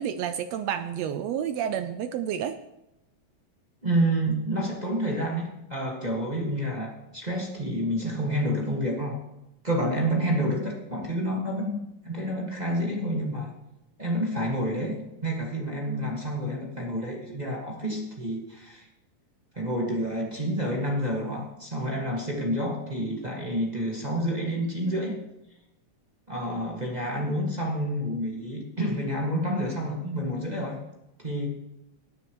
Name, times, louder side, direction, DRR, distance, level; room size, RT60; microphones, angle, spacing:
voice 1, 0.0-2.6 10.4-10.6, right 9 dB, 80° right, 10 dB, 1.5 m, -30 dB
voice 2, 3.8-9.2 9.6-13.5 14.0-18.9 19.5-25.2 26.3-30.8 31.2-31.5, equal, 20° right, -2 dB, 1.3 m, -29 dB
18.0 x 9.8 x 3.1 m, 0.90 s
omnidirectional pair, 3.5 m